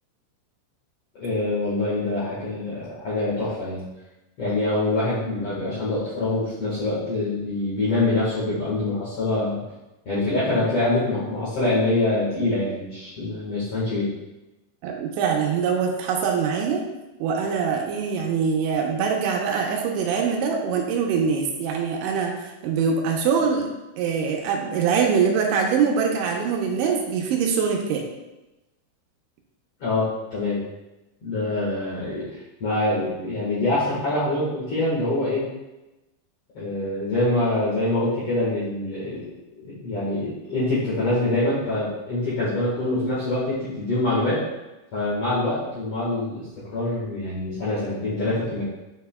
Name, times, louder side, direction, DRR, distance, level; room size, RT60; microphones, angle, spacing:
voice 1, 1.2-3.8 4.4-9.6 10.0-14.1 29.8-30.6 31.2-35.4 36.5-39.2 39.5-44.4 44.9-48.6, left 2 dB, 85° left, -9 dB, 1.3 m, -25 dB
voice 2, 14.8-16.8 17.2-23.7 24.0-28.0, right 6 dB, 80° right, 1 dB, 3.0 m, -23 dB
9.2 x 5.8 x 2.2 m, 1.0 s
omnidirectional pair, 5.4 m